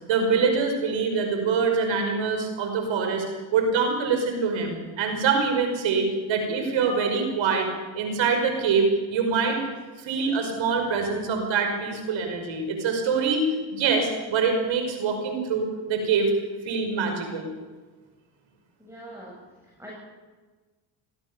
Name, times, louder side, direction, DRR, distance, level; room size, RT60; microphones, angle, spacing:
voice 1, 0.1-3.2 3.5-7.7 7.9-9.6 10.0-16.3 16.6-17.5, right 5 dB, 65° right, 4 dB, 5.7 m, -24 dB
voice 2, 18.8-19.4 19.8-19.9, right 1 dB, 5° right, -3 dB, 7.9 m, -42 dB
25.0 x 15.5 x 7.1 m, 1.3 s
supercardioid pair, 80°, 49 cm